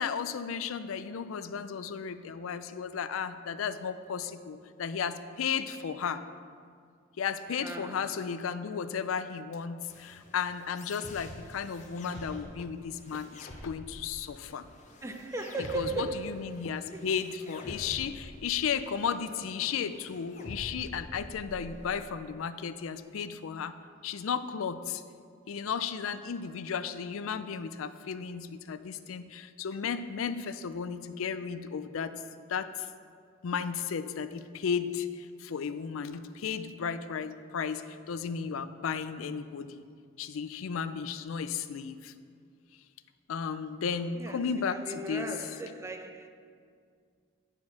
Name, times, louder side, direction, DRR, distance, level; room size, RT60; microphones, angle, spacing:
voice 1, 0.0-6.2 7.2-14.7 15.7-25.0 25.5-32.2 32.5-32.9 33.4-39.8 40.2-42.1 43.3-44.8 45.1-45.3, left 6 dB, 90° left, 0.4 m, -34 dB
voice 2, 7.6-8.3 15.0-17.1 39.2-39.5 44.1-46.3, right 2 dB, 15° right, 0.4 m, -38 dB
sound 1, 9.9-21.9, left 1 dB, 35° left, 0.7 m, -47 dB
9.6 x 4.5 x 5.8 m
head